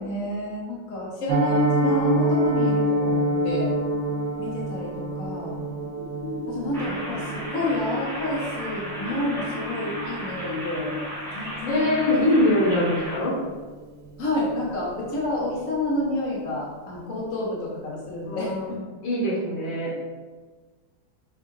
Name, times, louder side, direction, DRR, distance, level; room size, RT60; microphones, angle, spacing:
voice 1, 0.0-3.8 4.4-5.6 6.5-11.0 11.3-12.3 14.2-18.8, left 1 dB, 50° left, -5 dB, 1.3 m, -29 dB
Piano, 1.3-12.2 12.5-12.7 13.0-13.1 13.5-13.7 14.1-14.2, right 1 dB, 85° right, 1.3 m, -27 dB
sound 1, 6.0-11.0, left 2 dB, 65° left, 1.3 m, -37 dB
sound 2, 6.7-13.2, equal, ahead, 1.0 m, -35 dB
voice 2, 11.7-13.3 18.2-18.7 19.0-19.9, left 1 dB, 80° left, -4 dB, 1.8 m, -23 dB
6.7 x 2.4 x 3.2 m, 1.4 s
omnidirectional pair, 2.1 m